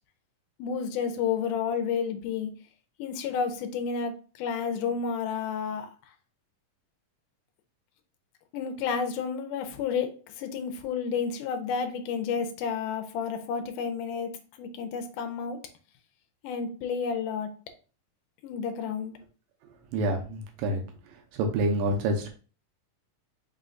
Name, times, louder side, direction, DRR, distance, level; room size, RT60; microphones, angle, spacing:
voice 1, 0.6-2.5 3.0-5.9 8.5-14.3 14.6-15.6 16.4-17.5 18.4-19.1, left 6 dB, 80° left, 2.0 m, -31 dB
voice 2, 19.9-20.8 21.3-22.3, right 1 dB, 85° right, 2.3 m, -27 dB
5.4 x 2.2 x 3.8 m
omnidirectional pair, 3.9 m